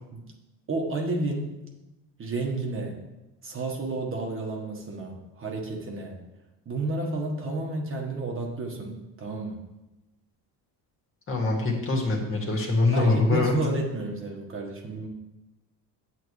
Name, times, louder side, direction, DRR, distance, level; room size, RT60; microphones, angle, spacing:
voice 1, 0.7-1.6 2.2-3.0 3.4-6.2 6.6-9.6 12.9-15.1, right 2 dB, 30° right, 0 dB, 1.4 m, -31 dB
voice 2, 11.3-13.5, left 3 dB, 30° left, -1 dB, 2.0 m, -24 dB
8.5 x 8.1 x 3.2 m, 1.0 s
cardioid pair, 125°, 40 cm